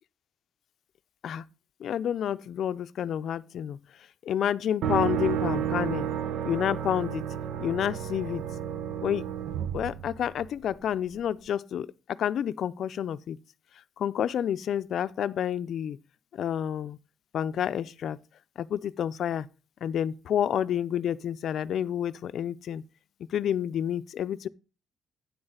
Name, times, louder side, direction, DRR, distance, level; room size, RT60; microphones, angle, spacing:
voice 1, 1.8-3.8 4.2-6.1 6.4-7.2 7.6-8.4 9.0-9.2 9.7-13.4 14.0-16.0 16.3-17.0 17.3-18.2 18.6-19.5 19.8-22.8 23.3-24.5, left 9 dB, 65° left, 0.5 m, -29 dB
sound 1, 4.8-10.7, right 9 dB, 80° right, 0.7 m, -31 dB
9.5 x 8.0 x 3.8 m
cardioid pair, 90°, 0 cm